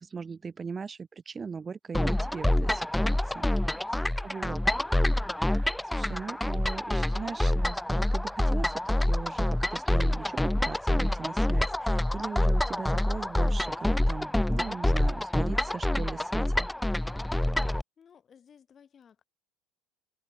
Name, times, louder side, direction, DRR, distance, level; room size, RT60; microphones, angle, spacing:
voice 1, 0.0-4.6 5.4-16.7, right 5 dB, 25° right, 1.8 m, -39 dB
sound 1, 1.9-17.8, left 1 dB, 5° left, 0.6 m, -27 dB
voice 2, 3.5-4.2 17.4-17.6 18.0-19.2, left 7 dB, 35° left, 7.2 m, -58 dB
hypercardioid pair, 70°, 0 cm